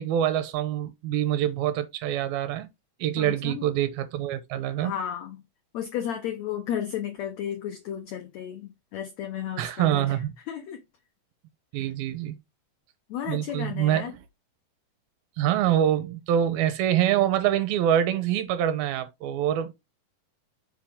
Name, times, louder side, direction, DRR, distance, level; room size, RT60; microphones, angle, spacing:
voice 1, 0.0-2.7 3.0-4.9 9.6-10.4 11.7-12.4 13.2-14.2 15.4-19.7, right 11 dB, 80° right, 2.7 m, -25 dB
voice 2, 3.2-3.7 4.8-5.4 5.7-10.2 10.5-10.8 11.7-11.8 13.1-14.1, left 9 dB, 85° left, 1.5 m, -33 dB
5.8 x 4.7 x 3.5 m
omnidirectional pair, 4.3 m